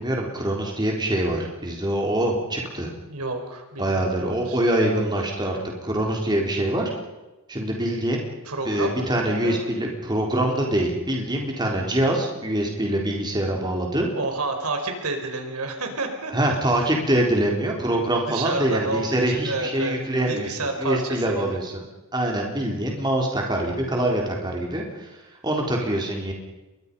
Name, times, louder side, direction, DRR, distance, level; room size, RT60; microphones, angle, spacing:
voice 1, 0.0-2.9 3.8-6.8 7.5-8.2 8.6-14.1 16.3-20.5 20.8-21.8 22.1-25.1 25.4-26.3, right 1 dB, 20° right, 0 dB, 3.9 m, -24 dB
voice 2, 3.1-4.6 8.4-9.7 14.1-16.3 18.3-19.9 20.3-21.6, right 3 dB, 85° right, 5 dB, 4.7 m, -30 dB
30.0 x 23.0 x 5.5 m, 1.1 s
head